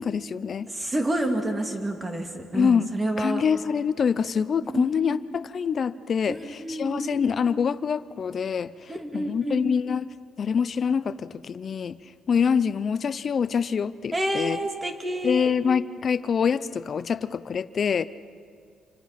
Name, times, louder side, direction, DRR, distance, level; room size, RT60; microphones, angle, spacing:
voice 1, 0.0-0.7 2.5-2.9 3.2-12.0 12.3-14.6 15.2-18.1, left 6 dB, 40° left, 15 dB, 0.7 m, -25 dB
voice 2, 0.7-3.4 4.7-5.2 6.3-7.2 8.9-9.7 14.1-15.5, right 1 dB, 15° right, 4 dB, 2.5 m, -29 dB
28.0 x 25.5 x 5.9 m, 2.1 s
cardioid pair, 135°, 0 cm